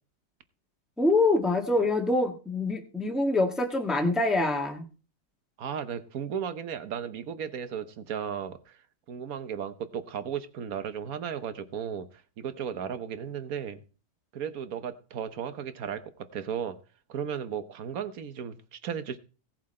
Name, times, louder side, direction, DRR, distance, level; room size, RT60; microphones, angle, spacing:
voice 1, 1.0-4.8, left 2 dB, ahead, 3 dB, 1.2 m, -25 dB
voice 2, 5.6-8.8 9.1-13.8 14.3-16.8 17.1-19.2, right 8 dB, 55° right, 11 dB, 1.3 m, -35 dB
17.0 x 7.6 x 4.3 m, 0.36 s
omnidirectional pair, 2.1 m